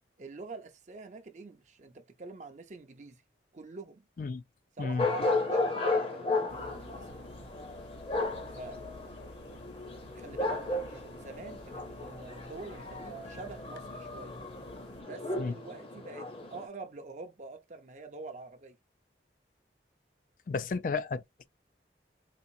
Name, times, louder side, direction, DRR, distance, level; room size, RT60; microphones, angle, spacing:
voice 1, 0.2-3.2 3.5-4.0 4.8-7.1 8.5-8.8 10.1-14.3 15.0-18.8, right 3 dB, 40° right, 0.5 m, -46 dB
sound 1, 5.0-16.7, left 2 dB, 30° left, 0.7 m, -34 dB
sound 2, 6.5-15.0, left 2 dB, 80° left, 0.7 m, -53 dB
voice 2, 20.5-21.5, left 4 dB, 45° left, 0.3 m, -33 dB
4.1 x 2.4 x 2.6 m
head